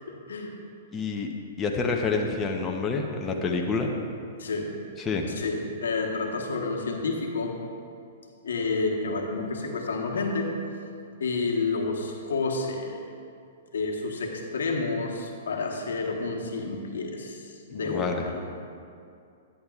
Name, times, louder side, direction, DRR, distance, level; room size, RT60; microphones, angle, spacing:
voice 1, 0.1-0.6 4.4-4.7 5.3-7.6 8.4-10.6 11.2-13.0 13.7-18.5, left 3 dB, 85° left, 1 dB, 1.1 m, -30 dB
voice 2, 0.9-1.3 1.6-3.9 5.0-5.2 17.7-18.2, left 4 dB, 20° left, 1 dB, 0.7 m, -28 dB
10.5 x 9.7 x 2.4 m, 2.4 s
hypercardioid pair, 135°, 0 cm